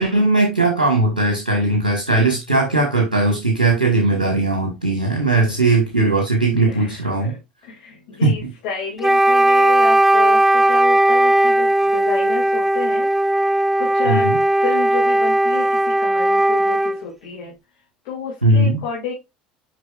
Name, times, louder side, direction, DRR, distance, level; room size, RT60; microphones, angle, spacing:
voice 1, 0.0-7.3 8.2-8.5 14.0-14.4 18.4-18.8, right 2 dB, 90° right, 1.5 m, -18 dB
voice 2, 6.7-13.1 13.4-17.6 18.0-19.1, left 5 dB, 60° left, 2.4 m, -31 dB
Wind instrument woodwind instrument, 9.0-17.0, right 1 dB, 5° right, 0.4 m, -17 dB
7.7 x 5.3 x 2.4 m
figure-of-eight pair, 70°, 5 cm